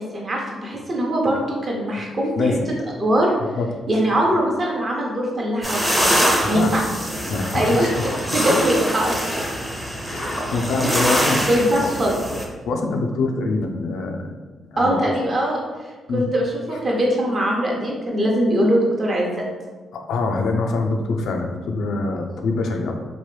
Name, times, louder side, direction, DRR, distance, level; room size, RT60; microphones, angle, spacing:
voice 1, 0.0-2.3 3.0-3.3 3.9-6.2 6.5-7.1 7.5-7.9 8.3-9.3 10.8-11.1 11.5-12.1 14.8-15.6 16.1-19.4, equal, 40° right, -1 dB, 0.8 m, -21 dB
voice 2, 2.3-2.7 3.5-3.7 6.4-6.9 7.3-7.9 10.1-11.9 12.7-14.3 14.7-15.0 16.1-16.3 19.9-23.0, left 3 dB, 80° left, 3 dB, 0.4 m, -24 dB
sound 1, 5.6-12.4, equal, 5° right, 0.6 m, -24 dB
3.0 x 2.2 x 3.2 m, 1.3 s
cardioid pair, 90°, 0 cm